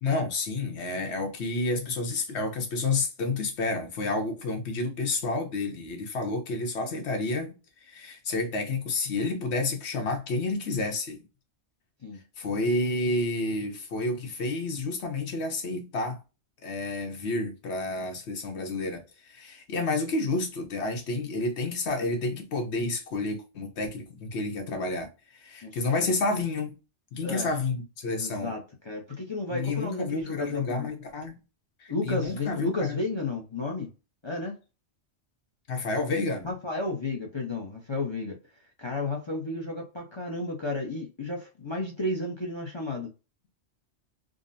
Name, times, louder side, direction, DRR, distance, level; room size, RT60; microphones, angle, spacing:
voice 1, 0.0-11.2 12.4-16.2 16.6-26.7 27.1-28.5 29.5-31.4 31.8-33.0 35.7-36.5, left 3 dB, 75° left, 1.1 m, -30 dB
voice 2, 25.6-26.1 27.2-27.5 28.1-30.9 31.9-33.9 34.2-34.6 36.4-38.4 38.8-43.1, left 2 dB, 30° left, 0.6 m, -32 dB
3.7 x 2.1 x 2.5 m
omnidirectional pair, 1.1 m